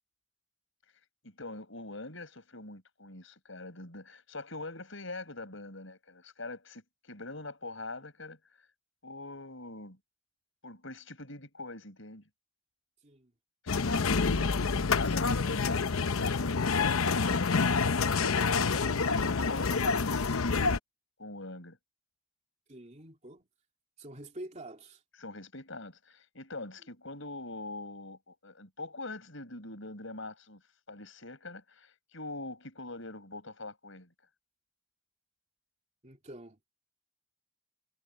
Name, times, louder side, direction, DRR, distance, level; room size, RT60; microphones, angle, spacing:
voice 1, 1.2-8.4 9.0-10.0 10.6-12.3 13.6-14.6 14.9-20.6 21.2-21.8 25.2-30.6 30.9-34.1, left 2 dB, 60° left, 6.6 m, -43 dB
sound 1, 13.7-20.8, left 4 dB, 80° left, 0.8 m, -27 dB
voice 2, 14.0-14.5 22.7-23.5 24.0-25.0 36.0-36.6, right 1 dB, 35° right, 2.9 m, -47 dB
head